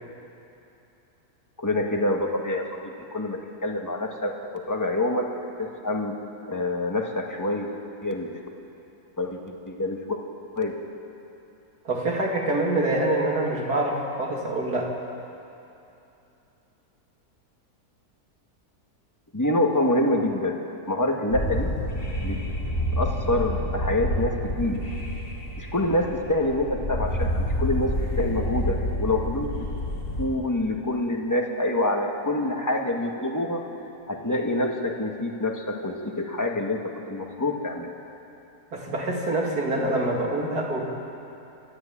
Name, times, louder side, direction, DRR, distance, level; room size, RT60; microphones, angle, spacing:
voice 1, 1.6-5.3 5.6-6.2 6.5-7.7 8.0-8.3 9.2-9.4 9.7-10.2 10.6-10.8 19.3-20.6 20.9-21.7 22.2-22.4 23.0-24.8 25.6-27.9 28.2-29.5 30.2-33.6 34.1-37.9, left 1 dB, 10° left, 1 dB, 1.8 m, -26 dB
voice 2, 11.8-14.9 38.7-40.8, right 2 dB, 75° right, -1 dB, 3.3 m, -25 dB
sound 1, 21.3-30.3, left 1 dB, 55° left, 3.6 m, -28 dB
29.5 x 13.0 x 8.8 m, 2.9 s
omnidirectional pair, 1.7 m